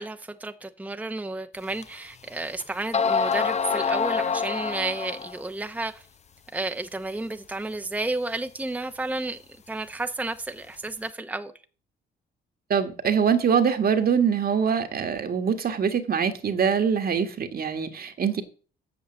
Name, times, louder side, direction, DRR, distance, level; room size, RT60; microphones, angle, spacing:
voice 1, 0.0-6.0 6.5-9.4 9.7-11.5, right 2 dB, 5° right, 0.8 m, -32 dB
sound 1, 1.8-1.9 2.6-2.7 2.9-5.4, left 5 dB, 35° left, 0.6 m, -26 dB
voice 2, 12.7-18.4, right 7 dB, 50° right, 1.5 m, -23 dB
8.2 x 6.5 x 7.7 m
cardioid pair, 90°, 20 cm